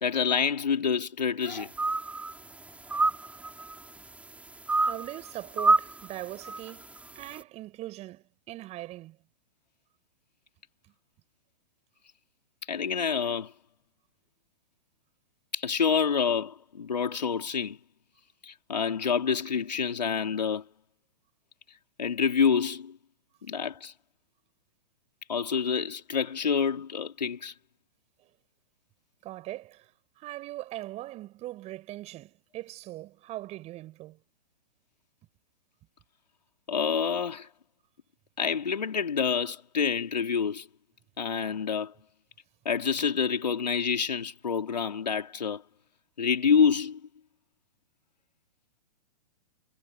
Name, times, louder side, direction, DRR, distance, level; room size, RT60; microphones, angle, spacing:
voice 1, 0.0-1.7 12.7-13.5 15.5-17.8 18.4-20.6 22.0-23.0 23.4-23.9 25.3-27.5 36.7-37.5 38.4-40.7 41.2-41.9 42.6-45.6 46.2-47.0, left 6 dB, 85° left, 4.1 m, -27 dB
sound 1, 1.5-2.3 2.7-3.7 4.7-5.2 5.6-6.0 6.4-6.7, right 3 dB, 5° right, 4.8 m, -26 dB
voice 2, 4.8-6.8 7.1-9.2 29.2-29.9 30.2-34.2, right 16 dB, 30° right, 7.9 m, -40 dB
hypercardioid pair, 120°, 21 cm